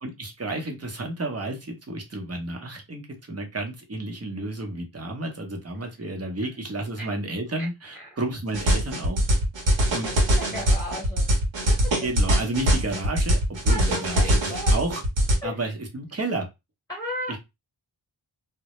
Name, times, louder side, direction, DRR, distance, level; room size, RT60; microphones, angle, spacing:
voice 1, 0.0-3.0 3.3-9.2 9.9-10.1 10.5-10.7 12.0-15.0 15.4-16.5 17.3-17.4, right 2 dB, 30° right, 2 dB, 0.8 m, -31 dB
sound 1, 8.5-15.4, equal, 65° right, 0.9 m, -22 dB
voice 2, 9.7-11.2 11.8-11.9 13.7-14.8 15.4-15.6 16.9-17.4, left 1 dB, 10° left, -3 dB, 1.2 m, -35 dB
2.1 x 2.0 x 2.9 m, 0.23 s
wide cardioid pair, 50°, 49 cm